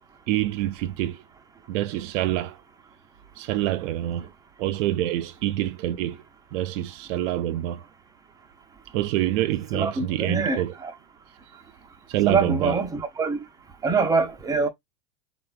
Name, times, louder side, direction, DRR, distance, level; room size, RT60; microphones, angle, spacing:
voice 1, 0.3-1.2 1.7-2.6 3.4-4.3 4.6-6.2 6.5-7.8 8.9-10.8 12.1-12.8, right 14 dB, 75° right, 0.5 m, -26 dB
voice 2, 9.7-10.9 12.3-13.4 13.8-14.7, right 4 dB, 10° right, 0.4 m, -24 dB
3.1 x 2.1 x 2.3 m
supercardioid pair, 115°, 37 cm